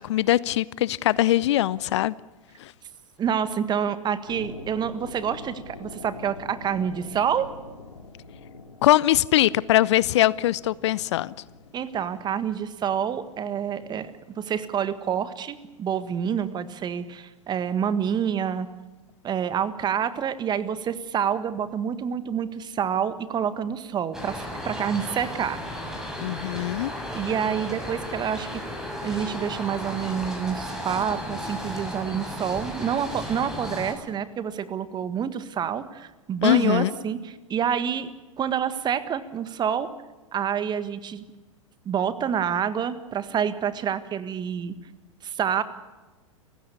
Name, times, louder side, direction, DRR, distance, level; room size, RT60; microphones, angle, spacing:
voice 1, 0.0-2.1 2.6-2.7 8.8-11.3 26.2-26.9 36.4-36.9, left 14 dB, 55° left, 22 dB, 0.6 m, -22 dB
voice 2, 3.2-7.5 11.7-14.1 14.4-18.7 19.2-25.6 27.1-28.6 29.0-38.1 38.4-39.9 40.3-41.2 41.8-44.7 45.2-45.6, right 8 dB, 25° right, 13 dB, 1.6 m, -27 dB
sound 1, 4.2-14.2, left 3 dB, 80° left, 3.2 m, -45 dB
sound 2, 24.1-33.9, left 1 dB, 5° right, 6.9 m, -34 dB
29.5 x 16.0 x 7.0 m, 1.2 s
figure-of-eight pair, 95°, 17 cm